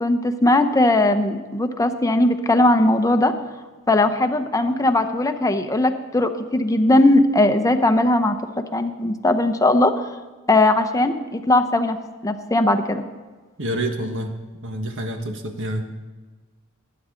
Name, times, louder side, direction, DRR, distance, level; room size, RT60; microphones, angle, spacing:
voice 1, 0.0-3.3 3.9-9.9 10.5-12.0 12.2-13.0, left 2 dB, 15° left, 7 dB, 0.8 m, -19 dB
voice 2, 13.6-14.4 14.6-15.8, right 1 dB, 60° right, 4 dB, 1.5 m, -27 dB
20.5 x 9.3 x 3.8 m, 1.3 s
head